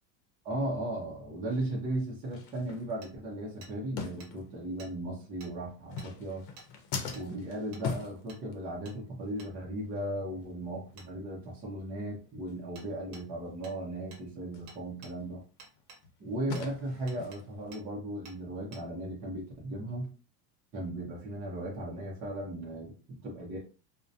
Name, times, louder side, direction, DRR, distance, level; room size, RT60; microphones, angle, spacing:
voice 1, 0.4-6.4 7.1-15.4 16.2-20.1 20.7-23.6, right 1 dB, 20° right, -4 dB, 0.4 m, -36 dB
sound 1, 1.5-1.6 2.3-3.3 4.0-4.8 5.8-9.0 9.3-9.5 9.8-9.9 10.4-10.5 10.9-11.0 11.4-11.5 11.9-12.0 12.5-12.6 14.5-14.7 15.2-17.7, left 5 dB, 85° left, 0.7 m, -41 dB
Hammer, 3.0-3.1 3.6-3.7 4.2-4.3 4.8-4.9 5.4-5.5 6.0-6.1 6.6-6.7 7.1-7.3 7.7-7.8 8.3-8.4 8.8-9.0 9.4-9.5 11.0-11.1 12.7-12.9 13.1-13.3 13.6-13.8 14.1-14.2 14.7-15.1 15.6-16.0 16.5-16.7 17.1-17.4 17.7-17.8 18.2-18.4 18.7-18.8, right 3 dB, 45° right, 0.8 m, -51 dB
2.3 x 2.1 x 2.6 m, 0.35 s
supercardioid pair, 160°, 50 cm